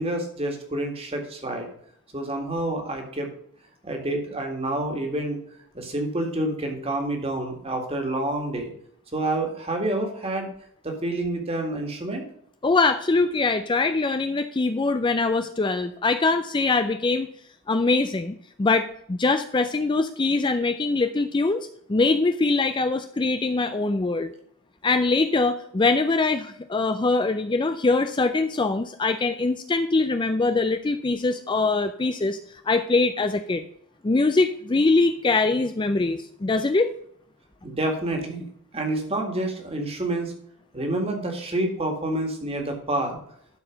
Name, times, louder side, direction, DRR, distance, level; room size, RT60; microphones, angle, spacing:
voice 1, 0.0-1.7 2.1-3.3 3.8-5.4 5.7-8.7 9.1-10.5 10.8-12.3 37.6-38.5 38.7-40.3 40.7-43.2, right 1 dB, 25° right, 3 dB, 1.9 m, -28 dB
voice 2, 12.6-17.3 17.7-24.3 24.8-32.4 32.7-33.6 34.0-36.9, left 3 dB, 20° left, 8 dB, 0.4 m, -23 dB
11.5 x 4.7 x 5.1 m, 0.68 s
head